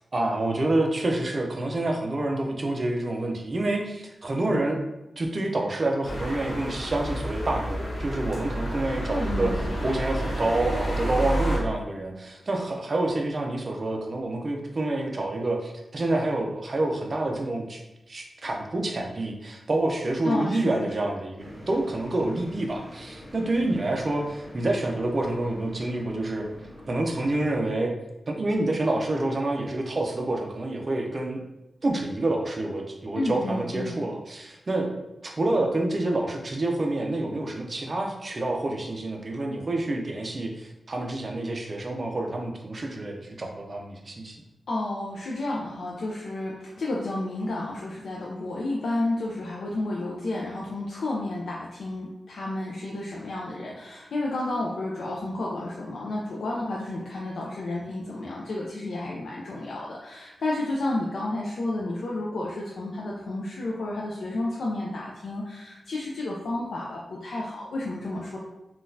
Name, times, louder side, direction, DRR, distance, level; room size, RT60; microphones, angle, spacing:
voice 1, 0.1-4.8 5.2-9.5 9.8-17.8 18.1-26.5 26.9-27.9 28.3-31.4 31.8-44.4, right 2 dB, 35° right, 2 dB, 0.4 m, -28 dB
sound 1, 6.0-11.6, equal, 50° left, 0.8 m, -30 dB
voice 2, 9.1-9.7 20.2-21.1 33.1-34.0 44.7-68.4, left 2 dB, 80° left, -4 dB, 0.4 m, -31 dB
sound 2, 21.4-27.6, equal, ahead, 1.4 m, -45 dB
3.8 x 2.3 x 2.6 m, 0.96 s
wide cardioid pair, 155°, 0 cm